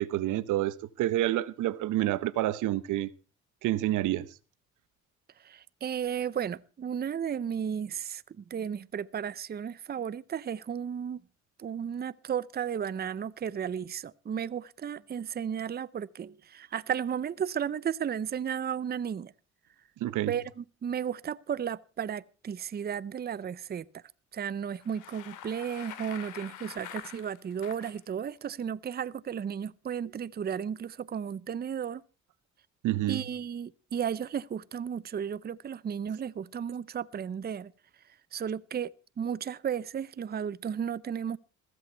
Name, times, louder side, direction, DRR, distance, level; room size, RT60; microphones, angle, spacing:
voice 1, 0.0-3.1 3.6-4.3 20.0-20.3 32.8-33.2, right 14 dB, 85° right, 0.8 m, -28 dB
voice 2, 5.4-11.2 11.6-19.3 20.3-24.0 24.3-32.0 33.1-37.7 38.3-38.9 39.2-41.4, right 8 dB, 35° right, 0.6 m, -34 dB
Bicycle, 24.7-28.0, left 11 dB, 85° left, 2.1 m, -45 dB
14.5 x 14.0 x 4.5 m
cardioid pair, 90°, 30 cm